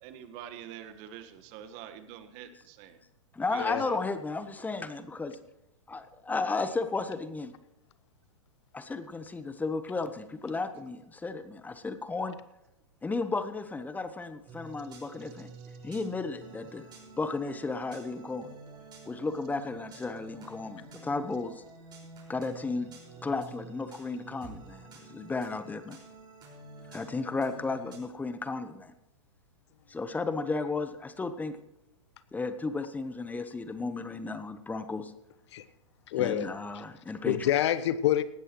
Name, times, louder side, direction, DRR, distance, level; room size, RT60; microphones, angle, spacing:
voice 1, 0.0-3.0 3.5-4.0, right 10 dB, 45° right, 10 dB, 1.5 m, -45 dB
voice 2, 3.3-5.4 5.9-7.5 8.7-12.4 13.0-15.5 15.8-16.8 17.2-18.5 19.1-21.6 22.3-22.9 23.2-26.0 26.9-28.9 29.9-31.6 32.3-35.1 36.2-37.5, left 3 dB, 10° left, 11 dB, 1.1 m, -34 dB
sound 1, 14.5-28.0, right 3 dB, 25° right, 5.4 m, -50 dB
voice 3, 36.1-36.5 37.2-38.2, left 11 dB, 60° left, 14 dB, 1.0 m, -27 dB
18.0 x 14.0 x 3.1 m, 0.92 s
hypercardioid pair, 110°, 16 cm